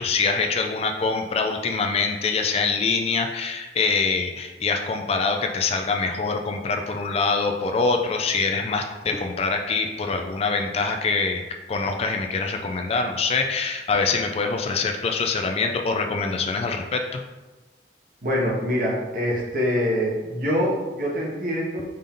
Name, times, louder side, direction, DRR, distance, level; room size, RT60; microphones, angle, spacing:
voice 1, 0.0-11.4 11.7-17.2, left 4 dB, 35° left, 4 dB, 0.3 m, -24 dB
voice 2, 18.2-21.8, equal, 50° right, -4 dB, 1.1 m, -24 dB
5.2 x 2.7 x 3.6 m, 1.2 s
head